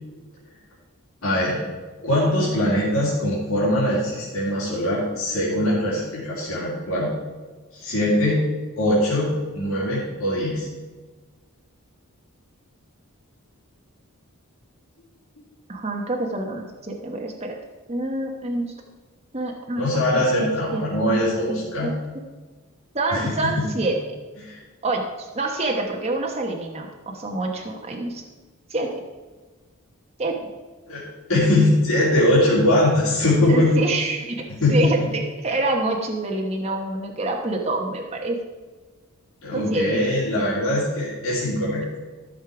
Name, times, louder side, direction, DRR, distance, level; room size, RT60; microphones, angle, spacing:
voice 1, 1.2-1.6 2.0-7.1 7.8-8.5 8.8-10.7 19.8-21.9 23.1-23.2 23.6-23.7 24.4-24.6 30.9-33.7 34.6-35.1 39.4-41.8, left 1 dB, 75° left, -8 dB, 3.3 m, -21 dB
voice 2, 15.7-17.6 17.9-18.8 19.3-21.2 21.5-21.9 22.9-24.0 24.8-28.2 28.7-29.0 30.2-30.5 33.5-38.4 39.5-39.9, right 2 dB, 30° right, 1 dB, 1.0 m, -27 dB
14.0 x 6.5 x 4.9 m, 1.3 s
head